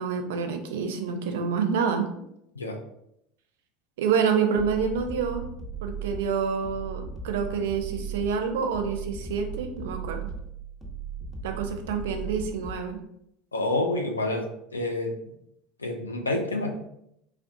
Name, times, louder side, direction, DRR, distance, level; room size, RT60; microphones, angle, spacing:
voice 1, 0.0-2.1 4.0-5.5 5.8-10.2 11.4-13.0, right 6 dB, 70° right, 6 dB, 0.4 m, -27 dB
sound 1, 4.5-12.9, right 6 dB, ahead, 0.8 m, -37 dB
voice 2, 13.5-14.5 14.7-15.1 15.8-16.7, left 2 dB, 90° left, 2 dB, 0.4 m, -28 dB
3.3 x 2.4 x 2.6 m, 0.77 s
figure-of-eight pair, 75°, 0 cm